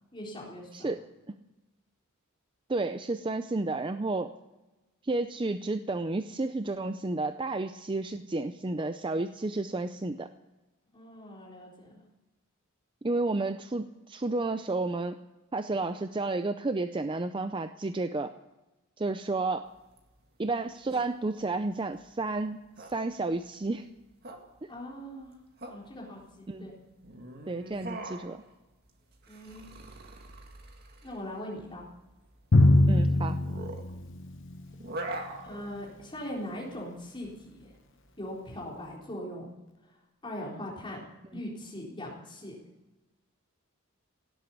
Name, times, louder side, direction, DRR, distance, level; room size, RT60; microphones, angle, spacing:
voice 1, 0.1-0.9 10.9-12.0 24.7-25.3 25.7-26.7 29.3-29.7 31.0-31.9 35.4-37.7 38.2-39.5 40.2-41.0 41.3-42.6, left 1 dB, 25° left, -3 dB, 4.0 m, -40 dB
voice 2, 0.7-1.0 2.7-4.3 5.0-10.3 13.0-15.2 15.5-18.3 19.0-19.7 20.4-22.6 22.9-23.9 24.6-24.7 26.5-26.7 27.5-28.4 32.9-33.4, right 2 dB, 25° right, 9 dB, 0.5 m, -31 dB
sound 1, 19.7-38.9, right 2 dB, 50° right, 2.1 m, -44 dB
Drum, 32.5-34.9, left 2 dB, 60° left, 0.9 m, -23 dB
17.5 x 8.3 x 9.9 m, 1.1 s
head